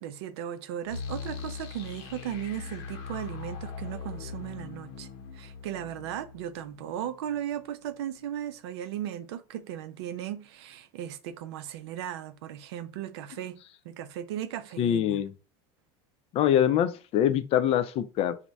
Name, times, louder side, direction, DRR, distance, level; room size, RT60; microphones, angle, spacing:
voice 1, 0.0-5.1 5.3-13.6 13.8-15.2, right 11 dB, 75° right, 0.5 m, -36 dB
sound 1, 0.9-7.7, left 6 dB, 70° left, 0.8 m, -41 dB
voice 2, 14.8-15.3 16.3-18.4, left 10 dB, 45° left, 0.5 m, -24 dB
4.1 x 2.1 x 4.5 m
supercardioid pair, 100°, 14 cm